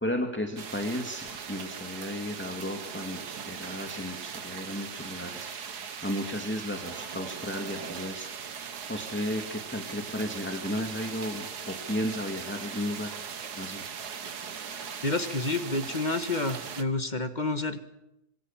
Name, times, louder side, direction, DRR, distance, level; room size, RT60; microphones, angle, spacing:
voice 1, 0.0-5.5 6.0-8.3 8.9-13.1 13.6-13.8, left 1 dB, 5° left, 4 dB, 2.2 m, -34 dB
sound 1, 0.6-16.8, right 6 dB, 55° right, 1.9 m, -39 dB
voice 2, 15.0-17.8, left 2 dB, 25° left, 9 dB, 1.5 m, -29 dB
26.0 x 22.5 x 7.4 m, 0.86 s
omnidirectional pair, 2.1 m